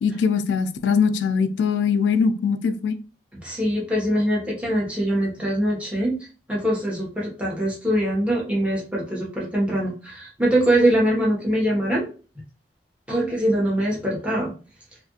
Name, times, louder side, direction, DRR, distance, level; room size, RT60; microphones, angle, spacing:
voice 1, 0.0-3.0, left 6 dB, 85° left, 0.3 m, -21 dB
voice 2, 3.4-6.1 6.5-12.1 13.1-14.5, right 1 dB, 5° right, 0.9 m, -23 dB
2.6 x 2.4 x 2.8 m
head